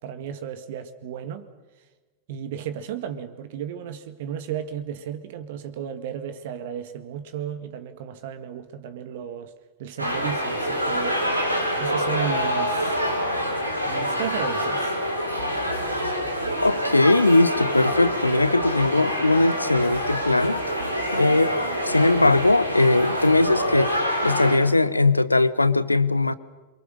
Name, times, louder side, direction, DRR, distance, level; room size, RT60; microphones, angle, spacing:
voice 1, 0.0-1.5 2.3-9.5 9.8-11.2 11.8-13.0 13.9-14.9, right 9 dB, 55° right, 10 dB, 2.0 m, -34 dB
sound 1, 10.0-24.6, equal, 90° right, 5.3 m, -26 dB
sound 2, 15.4-23.8, right 5 dB, 70° right, 2.4 m, -41 dB
voice 2, 16.6-20.6 21.1-21.5 21.8-23.9 24.2-26.3, left 2 dB, 85° left, 17 dB, 1.0 m, -20 dB
27.5 x 24.0 x 6.6 m, 1.3 s
figure-of-eight pair, 90°, 0 cm